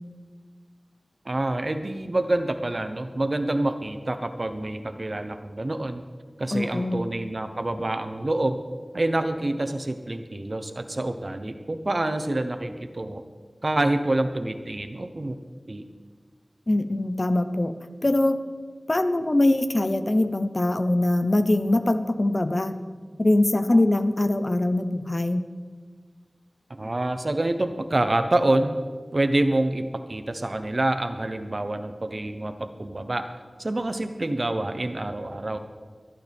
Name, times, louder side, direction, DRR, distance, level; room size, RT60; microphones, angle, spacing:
voice 1, 1.2-6.1 6.4-8.6 8.9-13.2 13.6-15.4 15.7-15.9 26.7-28.8 29.1-33.3 33.6-35.6, right 1 dB, 55° right, 8 dB, 0.9 m, -27 dB
voice 2, 6.5-7.0 16.7-17.7 18.0-18.4 18.9-22.8 23.2-25.4, left 1 dB, 50° left, 9 dB, 0.8 m, -22 dB
25.5 x 9.0 x 3.6 m, 1.5 s
wide cardioid pair, 40°, 0 cm